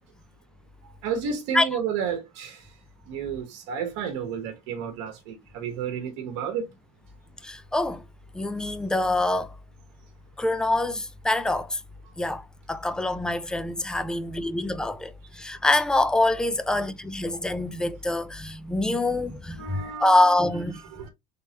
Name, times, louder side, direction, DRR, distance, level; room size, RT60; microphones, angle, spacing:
voice 1, 1.0-2.7 3.1-6.7 19.6-20.2 20.9-21.1, right 7 dB, 75° right, 1.1 m, -31 dB
voice 2, 7.4-8.0 8.3-9.5 10.4-11.8 12.2-20.8, left 2 dB, 5° left, 0.4 m, -25 dB
3.3 x 3.0 x 2.8 m
supercardioid pair, 110°, 15 cm